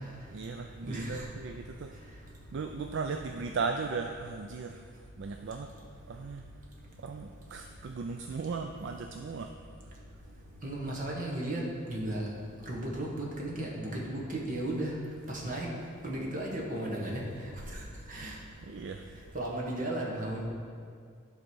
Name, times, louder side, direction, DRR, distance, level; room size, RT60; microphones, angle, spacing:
voice 1, 0.3-2.0 2.5-4.8 5.2-5.7 6.1-6.4 7.0-9.5 18.6-19.1, right 4 dB, 60° right, 5 dB, 0.4 m, -37 dB
voice 2, 0.8-1.2 10.6-11.6 11.9-12.2 12.7-14.9 15.3-15.7 16.0-17.2 17.7-17.8 18.1-18.3 19.3-20.4, right 1 dB, 40° right, -3 dB, 1.5 m, -35 dB
10.5 x 4.0 x 6.2 m, 2.2 s
head